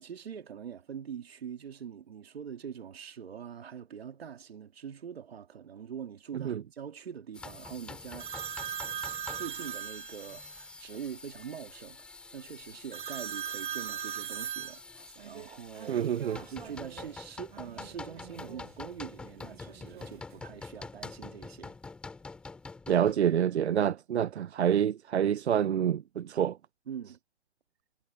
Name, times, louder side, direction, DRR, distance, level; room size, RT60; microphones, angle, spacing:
voice 1, 0.0-8.3 9.3-16.1 16.4-21.8 26.9-27.2, right 8 dB, 65° right, 2.9 m, -43 dB
sound 1, 7.3-23.1, left 3 dB, 5° left, 2.3 m, -46 dB
sound 2, 8.2-10.6 12.9-17.1 17.5-18.7 19.5-20.4, right 9 dB, 50° right, 0.8 m, -40 dB
voice 2, 15.9-16.4 22.9-26.6, right 9 dB, 85° right, 0.9 m, -27 dB
hypercardioid pair, 180°, 33 cm